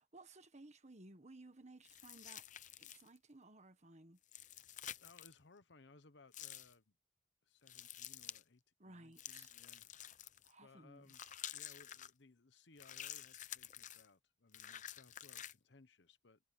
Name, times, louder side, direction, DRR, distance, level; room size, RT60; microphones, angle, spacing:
voice 1, 0.0-2.5 2.8-4.2 8.8-9.5 10.4-11.1, right 2 dB, 40° right, 1.6 m, -58 dB
sound 1, 1.8-3.2 4.2-5.3 6.3-6.7 7.7-8.4 9.2-10.5 11.1-12.1 12.8-14.1 14.5-15.5, left 11 dB, 45° left, 0.7 m, -50 dB
voice 2, 5.0-7.0 7.4-9.9 10.3-11.2 11.5-16.4, left 3 dB, 70° left, 1.1 m, -64 dB
head